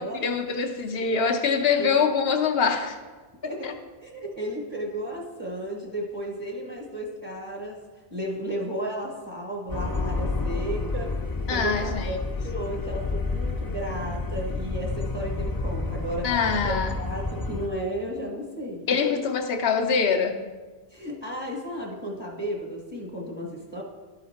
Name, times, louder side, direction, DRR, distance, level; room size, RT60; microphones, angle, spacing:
voice 1, 0.2-3.0 3.6-3.7 11.5-12.2 16.2-16.9 18.9-20.4, left 5 dB, 75° left, 5 dB, 0.9 m, -24 dB
voice 2, 3.4-7.8 8.1-11.1 11.5-16.3 16.6-19.2 20.9-23.8, equal, 25° right, -2 dB, 1.1 m, -34 dB
sound 1, 9.7-17.7, left 3 dB, 25° left, 0.5 m, -30 dB
12.0 x 5.0 x 4.2 m, 1.3 s
omnidirectional pair, 1.1 m